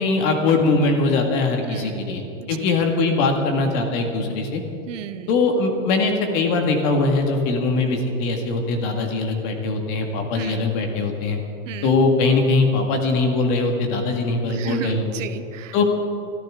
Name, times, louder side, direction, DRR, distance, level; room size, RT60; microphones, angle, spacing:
voice 1, 0.0-4.6 5.3-11.4 11.8-15.0 15.7-15.8, left 3 dB, 40° left, 3 dB, 2.1 m, -21 dB
voice 2, 1.6-2.0 2.4-2.5 4.9-5.3 10.3-10.7 11.6-12.0 14.5-15.8, right 10 dB, 75° right, 11 dB, 1.1 m, -34 dB
24.5 x 14.0 x 3.8 m, 2.7 s
supercardioid pair, 165°, 38 cm